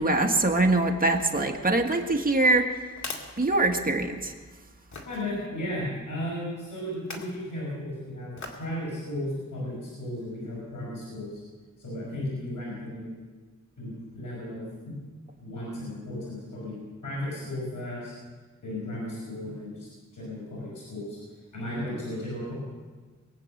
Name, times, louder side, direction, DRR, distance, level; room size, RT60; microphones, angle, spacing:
voice 1, 0.0-2.7 3.4-4.3, right 2 dB, 30° right, 3 dB, 1.6 m, -23 dB
sound 1, 1.8-4.2 4.9-5.3 6.9-7.4 8.4-8.7 9.2-9.3, left 3 dB, 65° left, 2.1 m, -42 dB
voice 2, 5.1-11.4 11.8-13.2 13.8-14.9 15.4-16.8 17.0-18.1 18.6-19.9 20.1-21.2 21.5-22.5, left 1 dB, 90° left, -6 dB, 5.7 m, -35 dB
22.5 x 8.6 x 6.5 m, 1.4 s
wide cardioid pair, 100°, 31 cm